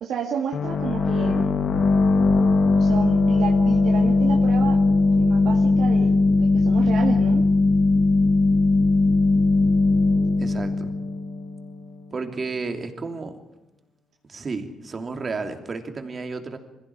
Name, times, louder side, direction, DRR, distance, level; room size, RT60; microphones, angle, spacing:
voice 1, 0.0-1.5 2.7-4.8 5.2-7.4, right 7 dB, 70° right, 1 dB, 2.1 m, -31 dB
sound 1, 0.5-12.0, left 3 dB, 55° left, 1.9 m, -19 dB
voice 2, 10.4-10.9 12.1-13.4 14.2-16.6, right 4 dB, 40° right, 6 dB, 2.9 m, -32 dB
22.0 x 15.5 x 9.5 m, 0.91 s
cardioid pair, 90°, 0 cm